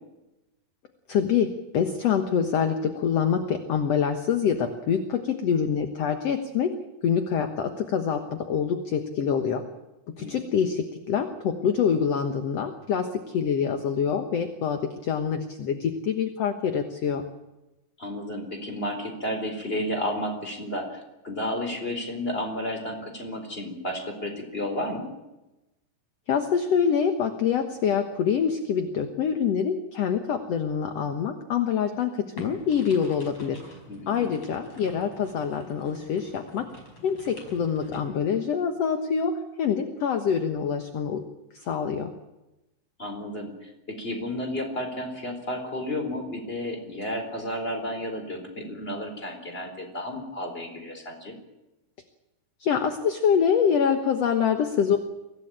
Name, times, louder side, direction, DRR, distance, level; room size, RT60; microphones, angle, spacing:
voice 1, 1.1-1.5 1.7-6.7 7.0-9.6 10.2-17.2 26.3-33.8 34.1-36.6 37.0-39.3 39.6-41.2 41.5-42.1 52.6-55.0, left 7 dB, 60° left, 6 dB, 2.1 m, -25 dB
voice 2, 18.0-25.1 33.9-34.3 43.0-51.3, left 1 dB, 15° left, 4 dB, 4.2 m, -32 dB
sound 1, 32.4-38.0, left 1 dB, 40° left, 5.9 m, -46 dB
24.5 x 16.5 x 8.8 m, 1.0 s
omnidirectional pair, 3.9 m